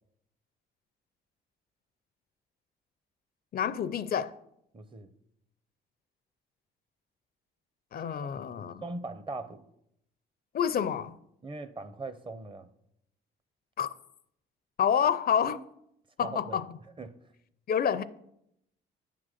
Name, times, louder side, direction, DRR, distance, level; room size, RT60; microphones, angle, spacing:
voice 1, 3.5-4.4 7.9-8.8 10.5-11.2 13.8-13.9 14.8-15.6 16.2-16.7 17.7-18.0, left 8 dB, 50° left, 0.4 m, -28 dB
voice 2, 4.7-5.1 8.2-9.7 11.4-12.7 16.2-16.6 17.0-17.2, right 3 dB, 25° right, 0.6 m, -40 dB
9.4 x 3.8 x 6.5 m
cardioid pair, 90°, 20 cm